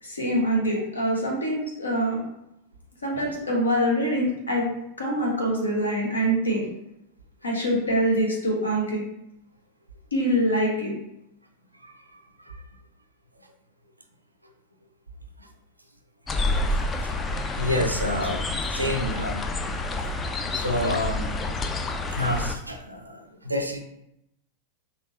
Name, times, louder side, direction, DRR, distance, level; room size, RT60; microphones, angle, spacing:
voice 1, 0.0-2.2 3.0-4.7 5.0-6.7 7.4-9.0 10.1-10.9, equal, 75° left, -1 dB, 0.9 m, -24 dB
voice 2, 11.8-12.6 15.4-15.5 16.7-19.4 20.5-21.3 22.1-23.8, left 1 dB, 85° right, 5 dB, 0.4 m, -29 dB
sound 1, 16.3-22.6, left 2 dB, 20° left, 0.3 m, -28 dB
3.7 x 2.7 x 2.5 m, 0.84 s
figure-of-eight pair, 90°, 0 cm